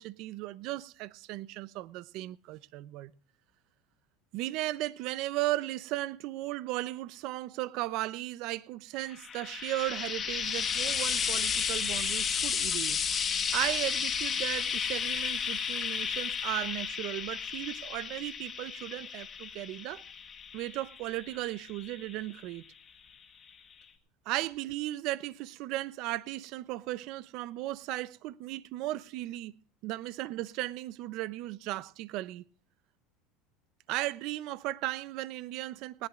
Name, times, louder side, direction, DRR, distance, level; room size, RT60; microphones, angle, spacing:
voice 1, 0.0-3.1 4.3-13.0 13.5-20.0 20.5-22.6 24.3-29.5 29.8-32.4 33.9-36.1, right 17 dB, 50° right, 0.7 m, -36 dB
Frying (food), 9.1-22.5 23.5-23.6, left 7 dB, 25° left, 1.7 m, -33 dB
19.0 x 17.5 x 2.5 m
cardioid pair, 155°, 0 cm